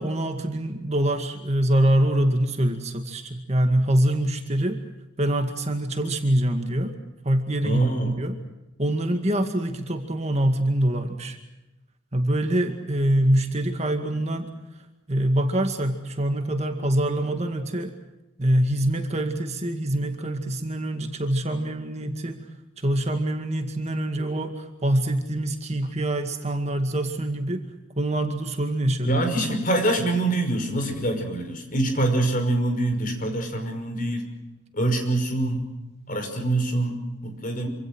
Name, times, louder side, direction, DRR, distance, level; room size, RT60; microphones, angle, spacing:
voice 1, 0.0-4.8 5.2-7.0 7.2-7.8 8.2-8.4 8.8-11.4 12.1-14.5 15.1-17.9 18.4-22.4 22.8-27.6 28.0-29.2, right 1 dB, 30° right, 5 dB, 2.1 m, -24 dB
voice 2, 7.6-8.2 29.1-34.2 34.7-35.6 36.1-37.7, right 2 dB, 40° left, 5 dB, 5.7 m, -25 dB
27.0 x 26.0 x 6.3 m, 0.98 s
head